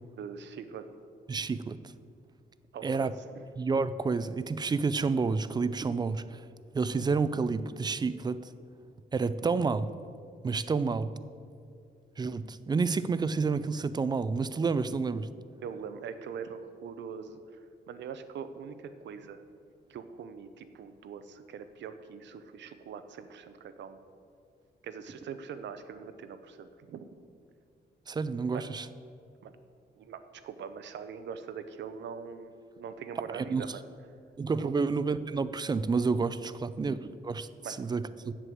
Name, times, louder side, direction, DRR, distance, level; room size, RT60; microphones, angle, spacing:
voice 1, 0.2-0.9 2.7-3.4 15.6-19.4 19.9-24.0 24.8-27.1 28.5-28.7 29.4-29.5 30.0-33.8 34.6-34.7 37.6-37.8, right 7 dB, 85° right, 10 dB, 0.7 m, -42 dB
voice 2, 1.3-1.8 2.8-3.1 3.6-6.4 6.7-8.4 9.1-9.9 10.4-11.1 12.2-15.3 28.1-28.9 33.3-33.6 34.4-37.5 37.8-38.3, right 4 dB, 25° right, 14 dB, 0.3 m, -29 dB
7.9 x 7.6 x 7.8 m, 2.4 s
wide cardioid pair, 145°, 18 cm